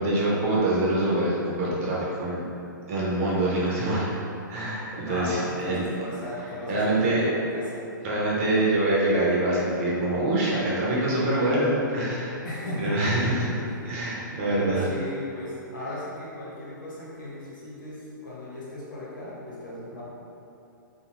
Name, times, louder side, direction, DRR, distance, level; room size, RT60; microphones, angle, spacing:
voice 1, 0.0-2.4 2.9-4.1 4.5-5.8 6.7-7.2 8.0-12.3 12.8-13.6 13.8-14.8, right 1 dB, 45° right, -6 dB, 0.8 m, -25 dB
voice 2, 5.0-7.8 12.4-13.5 14.5-20.0, equal, 70° left, -7 dB, 1.0 m, -36 dB
2.5 x 2.3 x 3.0 m, 2.7 s
hypercardioid pair, 135°, 11 cm